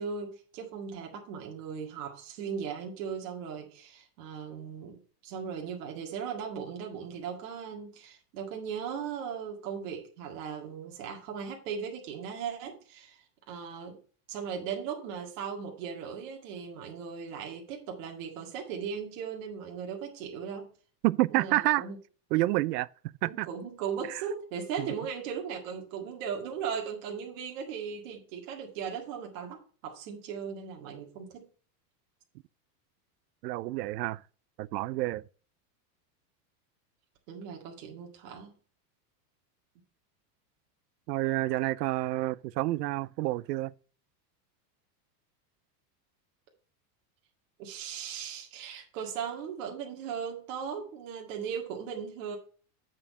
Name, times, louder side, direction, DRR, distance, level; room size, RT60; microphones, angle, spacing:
voice 1, 0.0-14.0 14.3-20.7 21.3-22.0 23.2-31.5 37.3-38.6 47.6-52.4, right 7 dB, 55° right, 2.1 m, -38 dB
voice 2, 21.0-21.8 22.3-22.9 23.2-23.5 24.8-24.9 33.4-34.2 34.6-35.2 41.1-43.7, right 18 dB, 90° right, 0.6 m, -28 dB
8.6 x 4.5 x 5.4 m
supercardioid pair, 165°, 47 cm